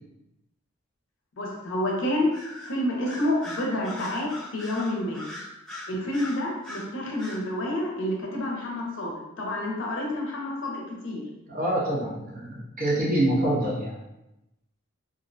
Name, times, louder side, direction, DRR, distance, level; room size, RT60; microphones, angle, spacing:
voice 1, 1.4-2.3 2.6-5.2 5.9-11.2, left 1 dB, 65° left, -1 dB, 0.5 m, -29 dB
Bird vocalization bird call bird song, 2.3-2.7 3.0-6.9 7.2-7.4, left 1 dB, 5° left, 0.7 m, -40 dB
voice 2, 11.5-13.9, right 1 dB, 40° right, -5 dB, 0.7 m, -26 dB
2.4 x 2.1 x 2.5 m, 0.93 s
head